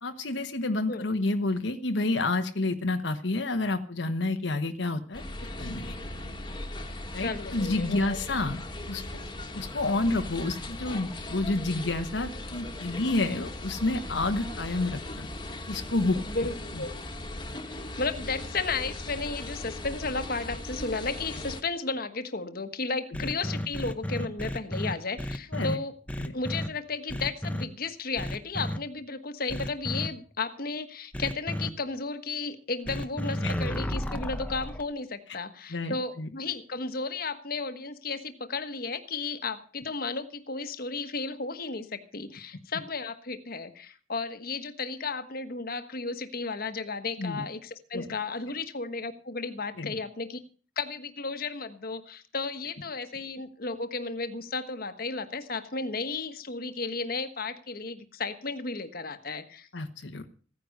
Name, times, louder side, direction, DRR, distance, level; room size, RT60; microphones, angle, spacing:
voice 1, 0.0-5.2 5.6-6.0 7.1-8.6 8.9-9.0 9.5-15.3 15.7-16.2 25.5-25.8 26.2-26.3 33.4-33.5 35.7-36.3 47.2-47.5 47.9-48.1 49.8-49.9 59.7-60.2, left 2 dB, 70° left, 6 dB, 1.2 m, -29 dB
sound 1, 5.1-21.6, left 1 dB, 25° left, 1.6 m, -38 dB
voice 2, 7.2-8.2 16.1-16.9 17.7-26.0 26.3-50.4 50.8-59.7, left 4 dB, 50° left, 9 dB, 1.3 m, -34 dB
sound 2, 23.1-25.7 26.1-26.7 27.1-27.6 28.2-28.8 29.5-30.1 31.1-31.7 32.9-34.8, equal, 5° left, 0.9 m, -32 dB
16.0 x 9.8 x 6.5 m, 0.40 s
head